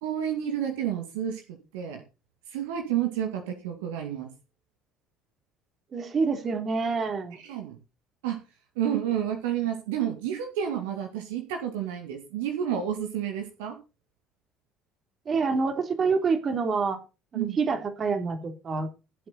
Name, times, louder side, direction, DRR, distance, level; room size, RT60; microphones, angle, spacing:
voice 1, 0.0-2.0 2.5-4.3 7.4-7.8 8.2-8.4 8.8-13.8 17.3-17.6, right 9 dB, 70° right, 2.3 m, -30 dB
voice 2, 5.9-7.4 15.2-17.0 17.3-18.9, right 4 dB, 40° right, 3.1 m, -27 dB
16.5 x 7.7 x 4.2 m
figure-of-eight pair, 55°, 0 cm